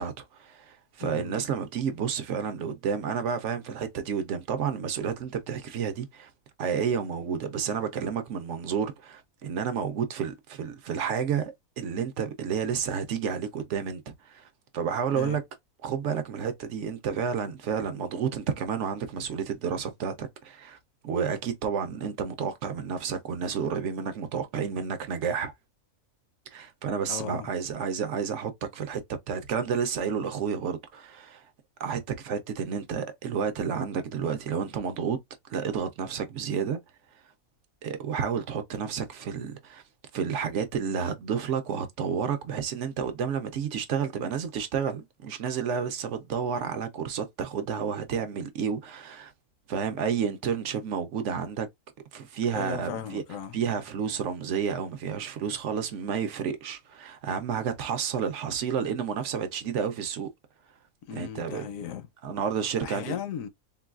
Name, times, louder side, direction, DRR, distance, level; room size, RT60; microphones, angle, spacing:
voice 1, 0.0-6.3 6.6-15.4 15.8-20.8 21.0-25.5 26.5-29.0 29.3-31.5 31.8-35.2 35.5-36.8 37.8-39.8 40.1-49.3 49.7-51.7 52.1-53.2 53.5-60.3 61.1-61.7 62.2-63.2, right 7 dB, 65° right, 0.8 m, -30 dB
voice 2, 1.0-1.4 15.1-15.4 27.1-27.5 52.5-53.6 61.1-62.1 62.8-63.5, left 8 dB, 70° left, 0.9 m, -36 dB
3.8 x 2.3 x 2.3 m
omnidirectional pair, 1.6 m